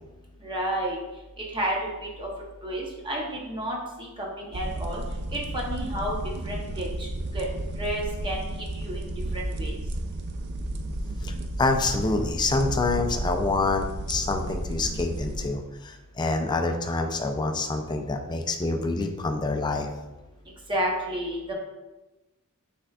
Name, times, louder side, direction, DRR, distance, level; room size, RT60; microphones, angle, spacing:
voice 1, 0.4-1.0 1.5-2.3 2.6-5.0 5.3-6.2 6.4-7.1 7.3-7.5 7.8-9.8 20.7-21.5, right 1 dB, 20° right, -2 dB, 0.8 m, -31 dB
sound 1, 4.5-15.5, right 1 dB, 50° right, 0.4 m, -32 dB
voice 2, 11.6-15.6 15.8-19.9, left 3 dB, 20° left, 4 dB, 0.4 m, -26 dB
5.9 x 3.4 x 2.3 m, 1.1 s
head